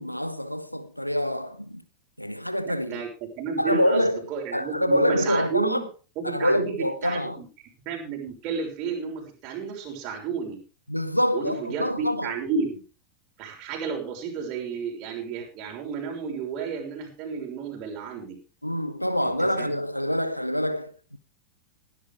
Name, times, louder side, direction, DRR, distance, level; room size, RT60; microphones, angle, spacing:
voice 1, 0.0-1.8 2.2-3.0 3.6-4.2 4.5-5.8 6.2-7.4 10.9-12.3 18.6-21.2, equal, 90° left, 1.2 m, -26 dB
voice 2, 2.6-3.1 3.4-5.8 6.2-6.7 7.0-7.5 7.8-10.6 11.3-12.8 13.4-18.4 19.2-19.7, right 5 dB, 40° right, 6.2 m, -32 dB
19.5 x 11.5 x 3.6 m
figure-of-eight pair, 90°, 0 cm